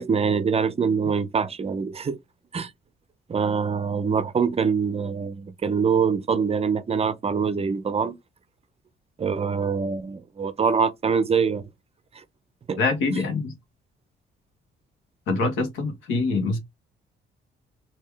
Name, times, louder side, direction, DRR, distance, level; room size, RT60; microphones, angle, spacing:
voice 1, 0.0-2.2 2.5-2.7 3.3-8.2 9.2-11.6 12.1-12.2 12.7-12.8, right 6 dB, 30° right, 0.5 m, -24 dB
voice 2, 12.8-13.5 15.3-16.6, left 3 dB, 90° left, 1.3 m, -24 dB
3.5 x 2.8 x 3.3 m
cardioid pair, 90°, 20 cm